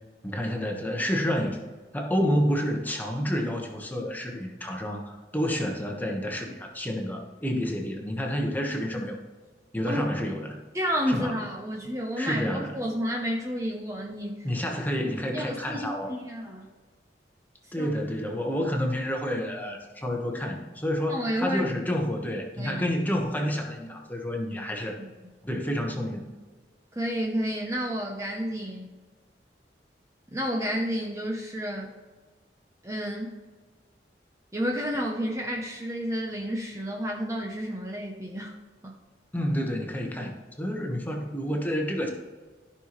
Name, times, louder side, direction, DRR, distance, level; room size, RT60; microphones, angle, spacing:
voice 1, 0.2-1.6 1.9-9.2 9.7-10.6 11.1-11.4 12.2-12.8 14.4-16.1 17.7-25.0 25.4-26.3 39.3-42.1, equal, 10° left, 1 dB, 1.1 m, -29 dB
voice 2, 10.7-14.5 15.3-16.7 17.6-17.9 21.1-21.7 22.6-22.8 25.0-25.1 26.9-28.9 30.3-31.9 32.8-33.4 34.5-38.5 38.8-39.0, equal, 15° right, 0 dB, 0.7 m, -31 dB
14.0 x 5.7 x 3.1 m, 1.4 s
head